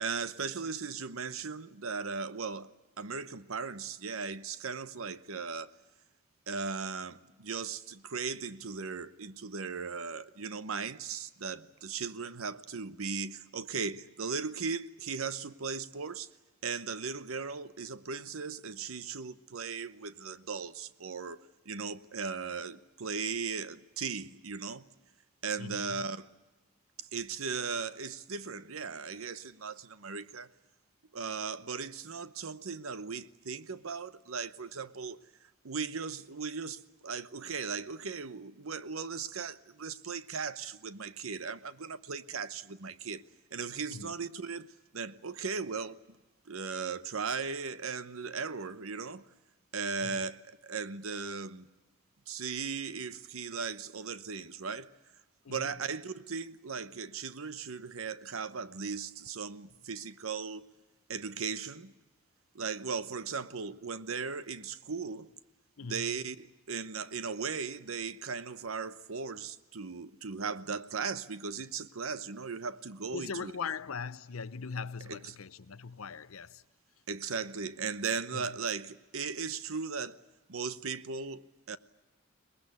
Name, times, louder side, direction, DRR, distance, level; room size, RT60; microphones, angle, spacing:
voice 1, 0.0-2.7 3.0-5.7 6.5-16.3 16.6-21.4 21.6-24.9 25.4-26.3 27.0-30.5 31.1-35.2 35.6-43.2 43.5-44.7 44.9-46.2 46.5-49.2 49.7-51.7 52.3-54.9 55.5-60.6 61.1-61.9 62.5-65.3 65.8-73.5 75.1-75.3 77.1-80.2 80.5-81.8, right 5 dB, 80° right, 0.9 m, -37 dB
voice 2, 25.6-26.1 43.9-44.1 50.0-50.3 55.4-55.7 65.8-66.2 73.1-76.6 78.3-78.6, left 5 dB, 85° left, 0.7 m, -40 dB
23.0 x 20.0 x 9.6 m
head